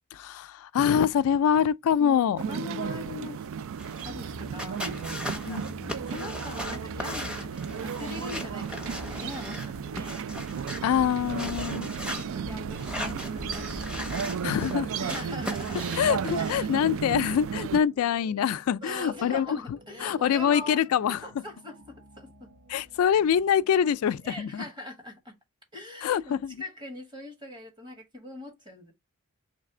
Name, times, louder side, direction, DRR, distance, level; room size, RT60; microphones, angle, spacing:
voice 1, 0.1-2.4 5.5-5.8 10.8-11.9 14.4-14.9 15.9-21.2 22.7-24.7 26.0-26.6, left 8 dB, 75° left, 0.3 m, -25 dB
voice 2, 2.0-3.5 4.0-10.3 12.1-14.4 15.0-15.9 16.3-16.7 18.8-20.8 21.1-21.8 22.2-22.5 24.2-25.3 25.7-28.9, left 2 dB, 20° right, 1.4 m, -41 dB
sound 1, 2.4-17.8, right 7 dB, 65° right, 0.3 m, -34 dB
sound 2, 3.8-16.6, left 1 dB, 5° right, 0.8 m, -38 dB
sound 3, 5.9-24.4, equal, 45° right, 0.9 m, -52 dB
3.3 x 3.3 x 4.8 m
head